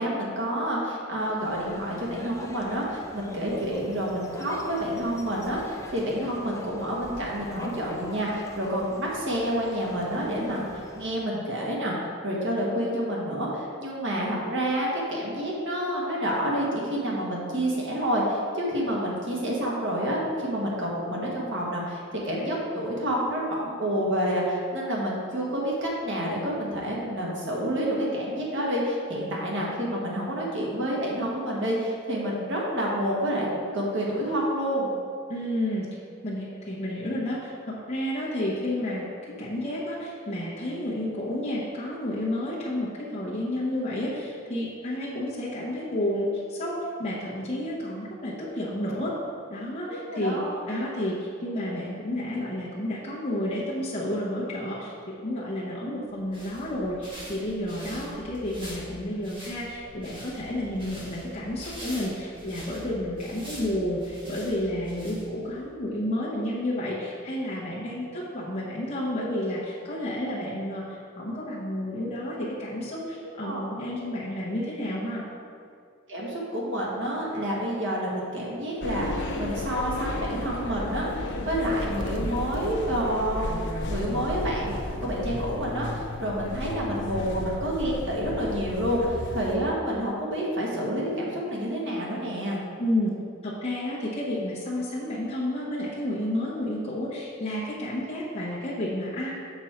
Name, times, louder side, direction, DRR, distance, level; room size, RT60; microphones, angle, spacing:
voice 1, 0.0-33.5 33.7-34.9 49.9-50.6 73.4-73.6 76.1-83.5 83.9-84.7 85.0-92.6, equal, 65° right, -3 dB, 1.6 m, -28 dB
sound 1, 1.4-11.2, left 1 dB, 15° left, 0.5 m, -45 dB
voice 2, 35.3-35.9 36.2-39.1 39.4-49.1 49.5-75.2 92.8-93.1 93.4-99.3, left 1 dB, 30° left, -8 dB, 1.0 m, -31 dB
sound 2, 56.1-65.6, equal, 25° right, 1.8 m, -44 dB
sound 3, 78.8-89.6, left 1 dB, 60° left, 0.7 m, -33 dB
7.0 x 5.3 x 4.4 m, 2.4 s
head